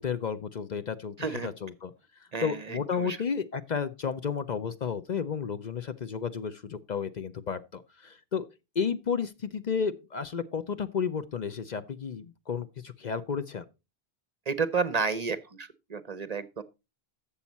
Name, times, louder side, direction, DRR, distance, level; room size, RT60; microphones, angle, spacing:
voice 1, 0.0-1.2 1.4-1.9 2.4-8.5 8.8-13.6, left 6 dB, 50° left, 0.7 m, -32 dB
voice 2, 1.2-1.5 2.3-3.2 14.5-16.6, right 5 dB, 45° right, 0.7 m, -31 dB
11.5 x 7.2 x 4.1 m
omnidirectional pair, 1.0 m